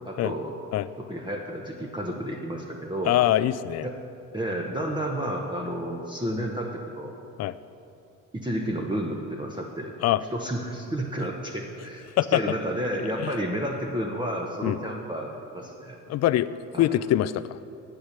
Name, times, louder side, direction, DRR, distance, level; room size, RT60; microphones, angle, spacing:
voice 1, 0.1-0.5 1.1-3.1 3.8-3.9 4.3-7.1 8.3-9.9 10.3-16.0 16.7-16.8, right 1 dB, 10° right, -1 dB, 1.0 m, -31 dB
voice 2, 3.0-3.9 7.4-7.5 10.0-10.2 12.2-12.6 13.2-13.3 14.6-14.8 16.1-17.6, left 13 dB, 45° left, 15 dB, 0.4 m, -24 dB
8.6 x 8.1 x 6.6 m, 2.6 s
supercardioid pair, 80°, 37 cm